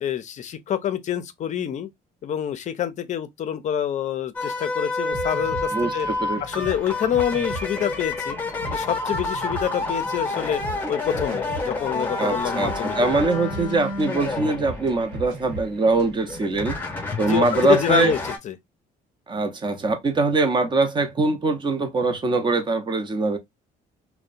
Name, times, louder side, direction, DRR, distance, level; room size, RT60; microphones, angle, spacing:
voice 1, 0.0-1.9 2.2-6.1 6.4-8.4 8.7-10.6 10.9-13.0 17.2-18.2 18.4-18.6, left 9 dB, 45° left, 0.5 m, -26 dB
sound 1, 4.4-15.7 16.3-18.4, left 3 dB, 10° left, 0.8 m, -29 dB
sound 2, 5.1-17.1, right 1 dB, 85° right, 1.0 m, -38 dB
voice 2, 5.7-6.4 12.1-16.8 17.2-18.1 19.3-23.4, right 3 dB, 25° right, 0.6 m, -22 dB
2.7 x 2.1 x 2.4 m
cardioid pair, 110°, 17 cm